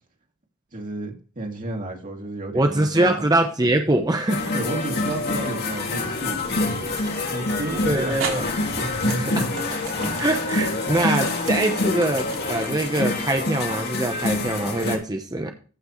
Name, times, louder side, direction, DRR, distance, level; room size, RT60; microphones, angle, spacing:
voice 1, 0.7-3.2 4.5-9.5 10.0-10.1, right 2 dB, 40° right, 2.6 m, -32 dB
voice 2, 2.5-4.4 7.8-8.4 9.2-9.4 10.2-15.5, right 2 dB, 20° right, 0.9 m, -23 dB
sound 1, 4.1-4.7 5.5-5.6 7.4-7.5 8.2-14.4, right 6 dB, 70° right, 3.6 m, -36 dB
sound 2, 4.3-15.0, left 2 dB, 50° left, 2.4 m, -26 dB
15.0 x 6.0 x 3.1 m
head